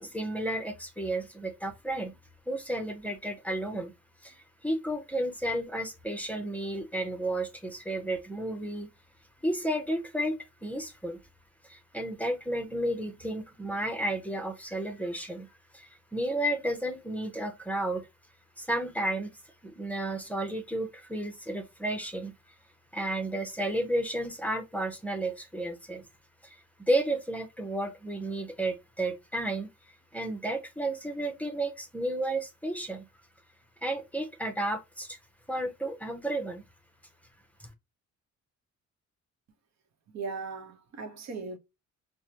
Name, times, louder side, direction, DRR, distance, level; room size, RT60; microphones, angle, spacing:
voice 1, 0.0-2.2 2.5-3.9 4.2-8.9 9.4-11.2 11.6-15.5 15.7-18.1 18.6-19.3 19.6-22.3 22.9-26.0 26.4-29.7 30.1-33.1 33.8-35.2 35.5-36.6 37.6-37.7, right 1 dB, 5° left, 0.8 m, -32 dB
voice 2, 40.1-41.6, right 4 dB, 60° right, 0.9 m, -38 dB
4.8 x 2.2 x 2.8 m
cardioid pair, 90°, 30 cm